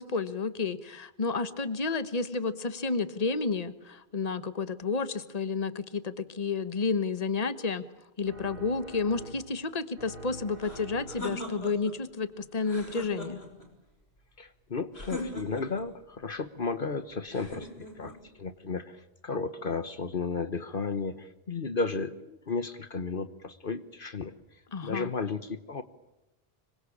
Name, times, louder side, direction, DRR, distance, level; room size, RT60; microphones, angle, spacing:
voice 1, 0.0-7.8 8.2-13.4 24.7-25.1, left 4 dB, 40° left, 13 dB, 1.4 m, -31 dB
sound 1, 8.2-9.7 10.0-11.5, right 1 dB, 65° right, 4.8 m, -46 dB
sound 2, 10.6-12.0 12.6-13.7 14.9-15.9 17.3-18.2, left 1 dB, 85° left, 6.0 m, -40 dB
voice 2, 14.4-24.3 24.8-25.8, left 4 dB, 60° left, 11 dB, 1.3 m, -34 dB
26.0 x 24.0 x 8.6 m, 0.98 s
omnidirectional pair, 1.0 m